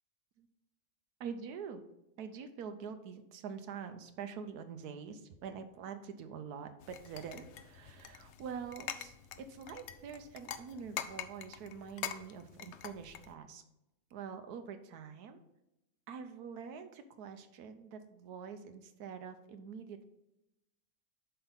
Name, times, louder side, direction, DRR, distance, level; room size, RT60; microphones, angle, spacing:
voice 1, 1.2-1.8 2.2-9.2 9.5-13.6 14.1-15.4 16.1-20.1, right 6 dB, 85° right, 8 dB, 1.3 m, -45 dB
sound 1, 6.8-13.3, left 9 dB, 70° left, 0.7 m, -45 dB
7.9 x 5.7 x 4.0 m, 0.88 s
omnidirectional pair, 1.6 m